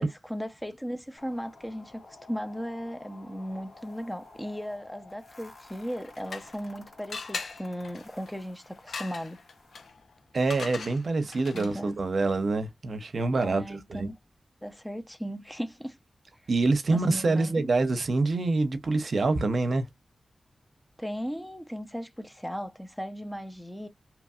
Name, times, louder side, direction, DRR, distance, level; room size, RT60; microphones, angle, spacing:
voice 1, 0.0-2.0 2.3-9.4 11.5-12.0 13.4-14.2 14.6-16.0 16.9-17.7 21.0-23.9, equal, 5° left, 0.6 m, -36 dB
sound 1, 1.2-9.9, left 3 dB, 65° left, 1.6 m, -52 dB
sound 2, 5.8-6.7 7.1-11.9, left 4 dB, 90° left, 0.6 m, -41 dB
voice 2, 10.3-14.1 16.5-19.9, right 3 dB, 75° right, 0.6 m, -26 dB
2.9 x 2.6 x 2.4 m
cardioid pair, 55°, 0 cm